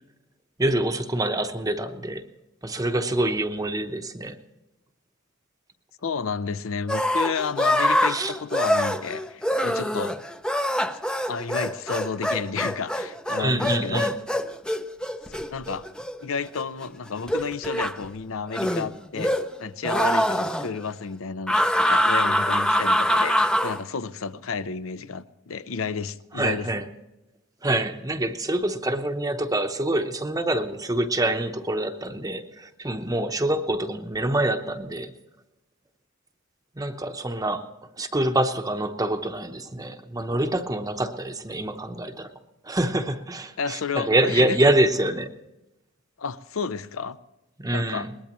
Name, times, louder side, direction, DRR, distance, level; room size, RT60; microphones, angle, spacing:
voice 1, 0.6-2.3 2.6-4.4 8.1-8.3 13.4-14.2 26.3-26.9 27.6-35.1 36.7-37.7 38.0-42.3 42.6-45.4 47.6-48.1, right 1 dB, 15° right, 6 dB, 0.9 m, -26 dB
voice 2, 6.0-10.1 11.3-14.1 15.3-15.9 16.2-19.3 19.6-26.7 43.6-44.5 46.2-47.2 47.7-48.1, left 5 dB, 75° left, 15 dB, 0.6 m, -31 dB
sound 1, 6.9-16.8 17.3-18.0 18.5-19.6 19.8-20.7 21.5-23.8, equal, 5° left, 0.5 m, -24 dB
21.5 x 20.0 x 3.1 m, 0.97 s
head